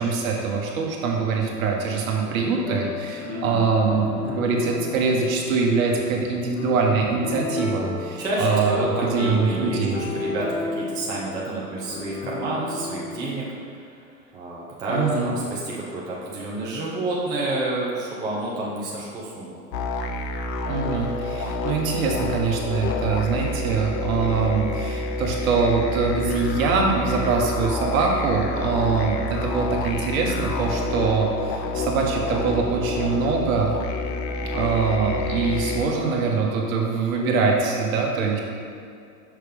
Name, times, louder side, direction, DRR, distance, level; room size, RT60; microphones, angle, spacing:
voice 1, 0.0-10.0 14.9-15.4 20.7-33.7 34.5-38.4, right 4 dB, 55° right, 0 dB, 1.2 m, -23 dB
sound 1, 2.6-13.3, left 2 dB, 35° left, 1.0 m, -33 dB
voice 2, 3.2-4.5 8.2-14.0 14.3-19.6 34.4-34.6, right 1 dB, 10° right, -6 dB, 0.4 m, -30 dB
sound 2, 19.7-35.9, left 2 dB, 75° left, 0.7 m, -28 dB
6.0 x 3.2 x 5.0 m, 2.4 s
hypercardioid pair, 115°, 50 cm